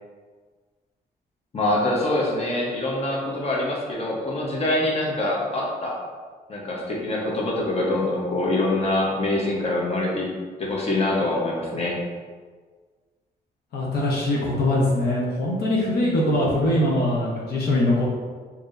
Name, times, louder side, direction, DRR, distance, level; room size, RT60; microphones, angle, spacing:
voice 1, 1.5-5.9 6.5-10.3 10.6-12.0, left 2 dB, 40° left, -3 dB, 1.0 m, -24 dB
voice 2, 13.7-18.1, left 1 dB, 75° left, -4 dB, 0.8 m, -22 dB
4.6 x 2.8 x 2.6 m, 1.5 s
cardioid pair, 90°, 17 cm